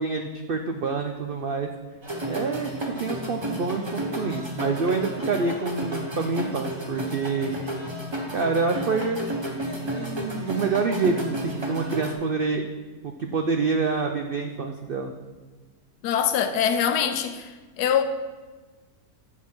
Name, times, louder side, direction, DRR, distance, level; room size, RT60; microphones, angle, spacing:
voice 1, 0.0-1.7 2.3-7.5 8.3-9.2 9.8-12.6 13.0-15.1, right 4 dB, 70° right, 0.5 m, -27 dB
sound 1, 2.0-12.1, right 1 dB, 20° right, 0.8 m, -32 dB
voice 2, 16.0-17.5 17.8-18.0, left 8 dB, 90° left, 1.2 m, -23 dB
7.4 x 5.9 x 5.9 m
omnidirectional pair, 1.7 m